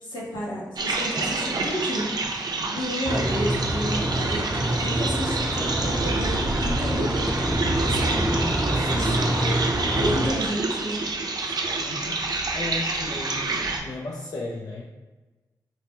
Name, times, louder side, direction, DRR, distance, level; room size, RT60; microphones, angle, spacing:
voice 1, 0.0-4.5 4.8-8.7 8.9-9.6 10.0-11.0 11.4-11.5, equal, 80° left, -7 dB, 1.2 m, -32 dB
sound 1, 0.8-13.8, right 3 dB, 60° right, 0.5 m, -28 dB
sound 2, 3.1-10.3, right 1 dB, 25° right, 0.8 m, -26 dB
voice 2, 8.7-9.4 11.8-14.8, left 2 dB, 60° left, -3 dB, 0.5 m, -35 dB
4.1 x 2.2 x 3.0 m, 1.2 s
supercardioid pair, 40°, 8 cm